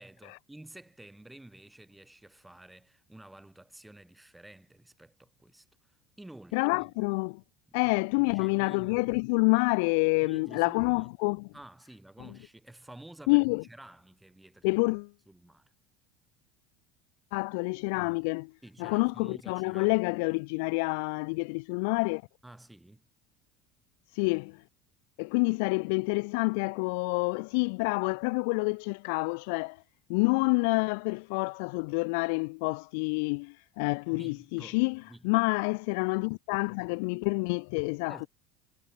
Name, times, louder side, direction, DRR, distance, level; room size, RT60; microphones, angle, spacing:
voice 1, 0.0-6.9 7.7-9.1 10.2-11.1 11.5-14.7 15.3-15.7 18.6-20.4 22.4-23.1 34.1-34.8 35.1-35.3 38.1-38.3, right 1 dB, 5° right, 3.4 m, -51 dB
voice 2, 6.5-7.4 7.7-11.5 13.3-13.6 14.6-15.1 17.3-18.5 18.8-22.2 24.1-24.6 25.2-29.8 30.1-38.3, left 32 dB, 70° left, 0.4 m, -28 dB
cardioid pair, 175°, 0 cm